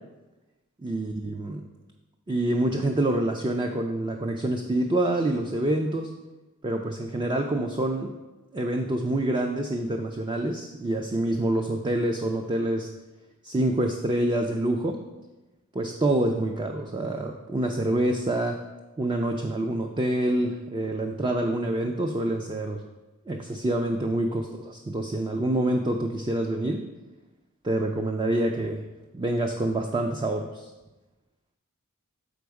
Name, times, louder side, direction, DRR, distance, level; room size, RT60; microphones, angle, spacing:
voice 1, 0.8-1.6 2.3-6.1 6.6-8.1 8.5-12.9 13.4-15.0 15.7-18.6 19.0-22.8 23.3-26.8 27.6-28.8 29.1-30.7, right 1 dB, 20° right, 3 dB, 0.4 m, -26 dB
6.8 x 5.2 x 4.7 m, 1.1 s
head